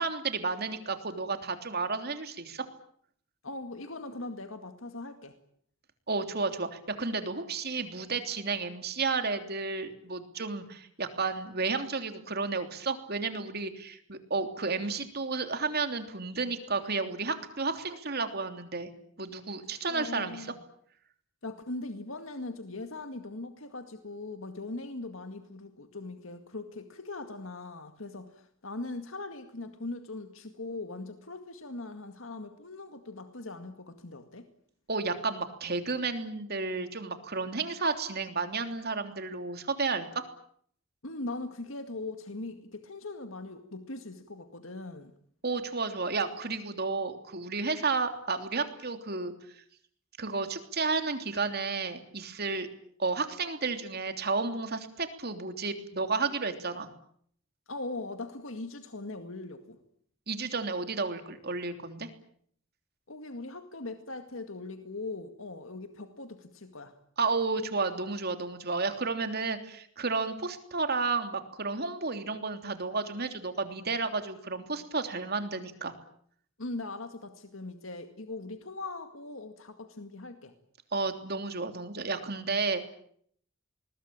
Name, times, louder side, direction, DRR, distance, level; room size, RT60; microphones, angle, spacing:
voice 1, 0.0-2.6 6.1-18.9 19.2-20.5 34.9-40.2 45.4-49.3 50.2-52.7 53.0-56.9 60.3-62.1 67.2-75.9 80.9-82.8, right 4 dB, 50° right, 7 dB, 3.3 m, -32 dB
voice 2, 3.4-5.4 19.7-20.6 21.4-34.5 41.0-45.1 57.7-59.8 63.1-66.9 76.6-80.5, left 2 dB, 80° left, 7 dB, 2.1 m, -40 dB
27.0 x 21.5 x 8.8 m, 0.64 s
head